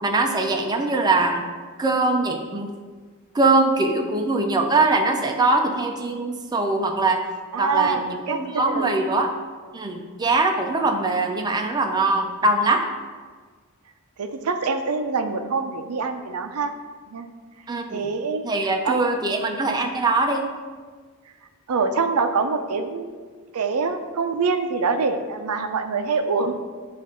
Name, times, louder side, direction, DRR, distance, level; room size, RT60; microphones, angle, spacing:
voice 1, 0.0-1.4 1.8-2.7 3.3-7.2 7.6-9.3 9.7-12.9 17.7-18.0 18.4-20.5, right 2 dB, 20° right, 3 dB, 0.4 m, -22 dB
voice 2, 7.5-9.0 14.2-16.7 17.1-17.3 17.9-18.4 18.8-19.3 21.7-23.2 23.5-26.5, right 4 dB, 90° right, 7 dB, 0.5 m, -25 dB
7.5 x 2.5 x 5.0 m, 1.5 s
head